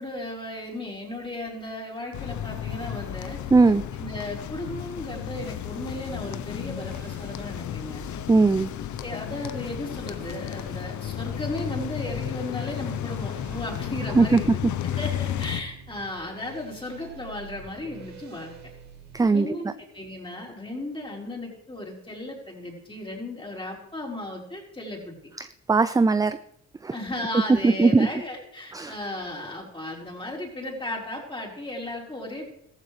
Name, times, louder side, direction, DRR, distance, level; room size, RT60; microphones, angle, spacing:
voice 1, 0.0-3.4 3.9-8.0 9.0-14.6 15.0-18.5 19.3-25.1 26.9-32.5, left 1 dB, 15° left, -1 dB, 4.4 m, -35 dB
sound 1, 2.1-15.6, left 10 dB, 70° left, 0.8 m, -33 dB
voice 2, 3.5-3.8 8.3-8.7 14.1-14.4 19.1-19.5 25.4-26.4 26.8-26.9 27.6-28.1 28.7-28.9, right 3 dB, 10° right, 12 dB, 0.4 m, -19 dB
sound 2, 6.4-19.2, right 2 dB, 65° right, 2.6 m, -48 dB
14.5 x 14.0 x 3.3 m, 0.74 s
cardioid pair, 90°, 30 cm